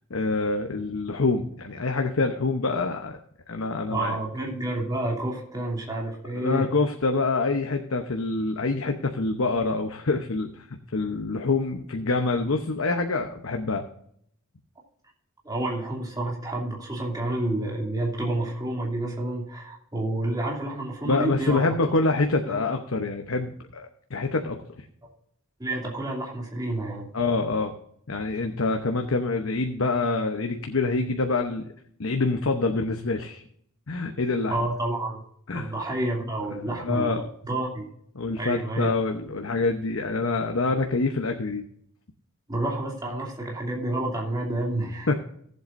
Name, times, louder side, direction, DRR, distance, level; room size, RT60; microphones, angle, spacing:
voice 1, 0.1-3.2 3.5-4.2 6.3-10.7 10.9-13.8 21.1-24.9 27.1-27.7 28.1-31.7 32.0-33.4 33.9-34.7 35.5-35.7 36.7-37.3 38.2-41.6 45.1-45.2, left 3 dB, 70° left, 4 dB, 0.9 m, -26 dB
voice 2, 3.9-6.7 15.4-21.7 22.5-22.6 25.6-27.1 34.5-35.2 35.5-37.1 37.4-37.9 38.4-38.9 42.5-45.1, right 1 dB, 20° right, -2 dB, 2.6 m, -29 dB
17.5 x 7.9 x 2.6 m, 0.68 s
head